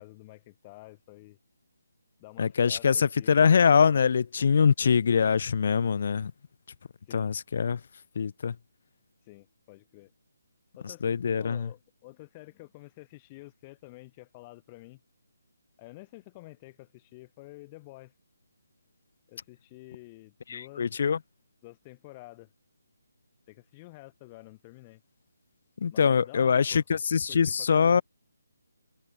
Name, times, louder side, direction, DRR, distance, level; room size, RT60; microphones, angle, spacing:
voice 1, 0.0-1.4 2.2-4.0 7.1-7.3 9.3-10.1 10.8-11.1 11.4-15.0 15.8-18.1 19.3-20.9 21.6-22.5 23.5-25.0 25.9-26.8 27.3-28.0, left 22 dB, 20° left, 3.2 m, -49 dB
voice 2, 2.4-6.3 7.1-7.8 8.1-8.6 10.8-11.7 20.5-21.2 25.8-28.0, left 6 dB, 45° left, 0.7 m, -23 dB
figure-of-eight pair, 150°, 0 cm